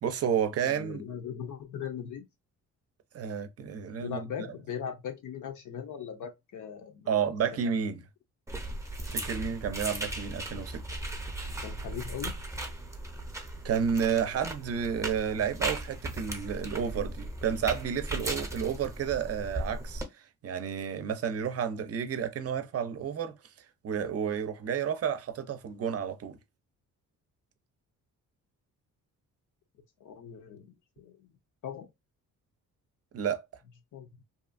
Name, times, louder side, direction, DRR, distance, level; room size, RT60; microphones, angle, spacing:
voice 1, 0.0-1.0 3.1-4.5 7.1-8.0 9.1-10.8 13.6-23.4 23.8-26.4 33.1-33.4, right 7 dB, 45° right, 0.6 m, -31 dB
voice 2, 0.6-2.3 4.0-7.3 11.6-12.5 30.0-31.3 31.6-31.9 33.9-34.1, left 8 dB, 60° left, 0.7 m, -39 dB
sound 1, 8.5-20.0, right 1 dB, 10° right, 0.7 m, -37 dB
2.7 x 2.4 x 2.5 m
cardioid pair, 90°, 34 cm